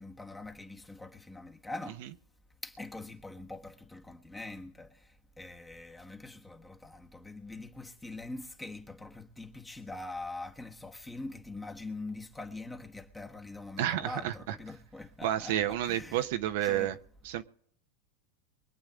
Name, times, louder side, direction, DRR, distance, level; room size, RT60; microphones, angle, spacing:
voice 1, 0.0-2.0 2.6-4.9 5.4-16.3 16.6-16.9, left 2 dB, 10° left, 1.3 m, -43 dB
voice 2, 13.8-14.5 15.2-16.9 17.2-17.4, right 12 dB, 70° right, 1.0 m, -30 dB
24.0 x 8.9 x 3.7 m
supercardioid pair, 125°, 0 cm